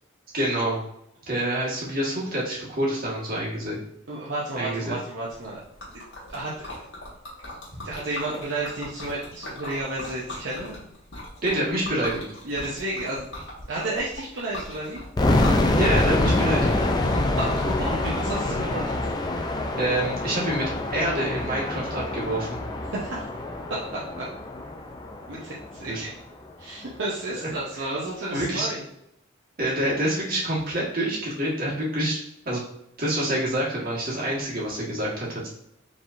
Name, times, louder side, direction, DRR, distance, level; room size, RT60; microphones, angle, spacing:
voice 1, 0.3-0.8 1.3-3.8 4.6-5.0 7.7-7.8 11.4-12.2 15.8-16.7 19.8-22.6 25.9-26.0 28.3-28.7 29.6-32.2 32.5-32.6 33.0-35.5, right 1 dB, 50° right, -5 dB, 1.6 m, -27 dB
voice 2, 4.1-5.6 6.3-6.7 7.8-10.8 12.4-13.3 13.7-15.0 17.0-19.0 22.9-23.3 23.7-24.3 25.3-26.1 26.6-28.9, right 2 dB, 70° right, -6 dB, 0.8 m, -32 dB
Liquid, 5.3-18.5, left 1 dB, 70° left, 1.6 m, -40 dB
sound 1, 15.2-26.0, left 1 dB, 20° left, 0.4 m, -25 dB
5.1 x 3.5 x 2.6 m, 0.80 s
head